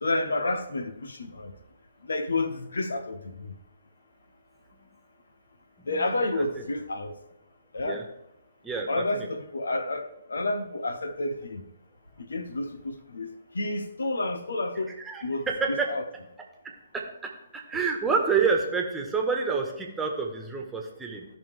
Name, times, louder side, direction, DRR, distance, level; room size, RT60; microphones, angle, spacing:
voice 1, 0.0-1.5 2.0-3.5 5.9-7.1 7.7-8.0 8.9-11.6 12.2-14.9 15.2-16.1, left 2 dB, 75° left, 9 dB, 1.0 m, -30 dB
voice 2, 5.8-6.1 6.3-6.6 7.8-8.0 8.6-9.3 15.0-16.0 16.9-21.3, right 5 dB, 10° right, 1 dB, 1.6 m, -28 dB
16.0 x 5.5 x 3.6 m, 0.85 s
figure-of-eight pair, 130°, 0 cm